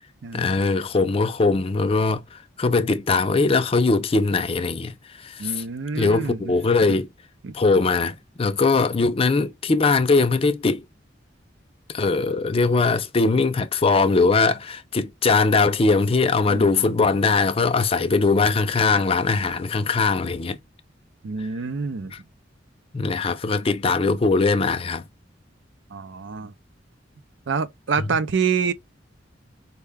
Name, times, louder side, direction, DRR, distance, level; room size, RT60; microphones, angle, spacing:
voice 1, 0.3-5.6 5.9-7.1 7.5-10.8 11.9-20.6 22.1-22.2 22.9-25.0, left 3 dB, 30° left, 0.4 m, -21 dB
voice 2, 5.4-6.5 7.4-7.5 16.5-16.8 21.2-22.1 25.9-26.5 27.5-28.7, right 5 dB, 70° right, 0.5 m, -27 dB
4.6 x 2.2 x 3.3 m
head